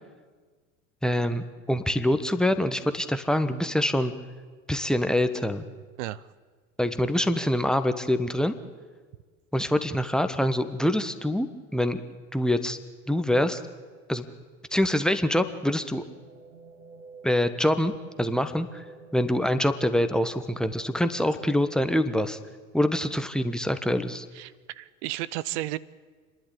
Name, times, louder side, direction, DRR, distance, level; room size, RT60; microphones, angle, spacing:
voice 1, 1.0-4.1 4.7-5.7 6.8-8.5 9.5-11.5 11.7-12.0 12.3-12.8 13.1-13.6 14.1-14.3 14.7-16.0 17.2-17.9 18.2-18.8 19.1-22.4 22.7-24.3, left 1 dB, ahead, 9 dB, 1.2 m, -25 dB
sound 1, 16.1-21.6, right 4 dB, 70° right, 2.6 m, -49 dB
voice 2, 24.3-25.8, right 16 dB, 50° right, 19 dB, 0.8 m, -33 dB
29.5 x 11.0 x 8.6 m, 1.5 s
figure-of-eight pair, 70°, 43 cm